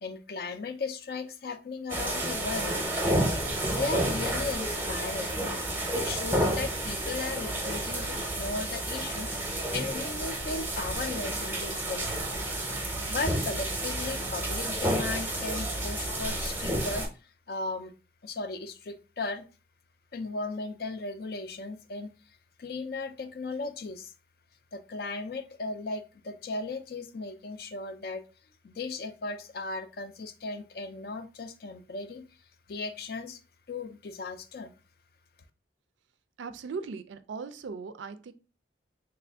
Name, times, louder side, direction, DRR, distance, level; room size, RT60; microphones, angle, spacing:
voice 1, 0.0-2.7 3.3-5.4 5.9-12.2 13.1-17.9 18.2-19.5 20.1-22.1 22.6-24.1 24.7-28.2 28.6-32.3 32.7-33.4 33.7-34.7, left 3 dB, 55° left, 0.4 m, -36 dB
sound 1, 1.9-17.1, right 1 dB, 10° right, 0.6 m, -30 dB
voice 2, 36.4-38.3, right 5 dB, 85° right, 0.4 m, -38 dB
3.2 x 2.5 x 3.3 m
head